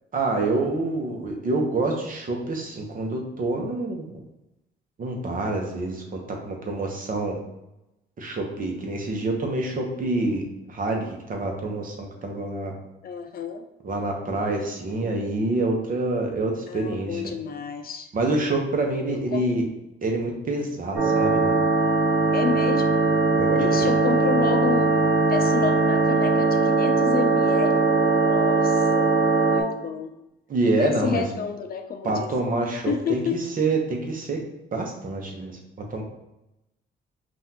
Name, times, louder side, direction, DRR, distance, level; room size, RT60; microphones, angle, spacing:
voice 1, 0.1-4.2 5.0-7.4 8.2-12.7 13.8-17.2 18.1-19.7 20.0-21.5 23.3-24.0 30.5-31.2 32.0-33.2 33.6-34.4 34.7-35.5 35.9-36.0, right 2 dB, 45° right, 1 dB, 1.0 m, -27 dB
voice 2, 13.0-13.7 16.7-18.1 19.1-19.5 22.3-22.9 23.6-24.9 25.3-29.1 29.5-30.1 30.7-32.3 32.9-33.4, left 6 dB, 50° left, 6 dB, 0.5 m, -30 dB
sound 1, 20.9-29.6, right 3 dB, 70° right, 1.2 m, -20 dB
5.6 x 2.6 x 2.9 m, 0.91 s
cardioid pair, 90°, 20 cm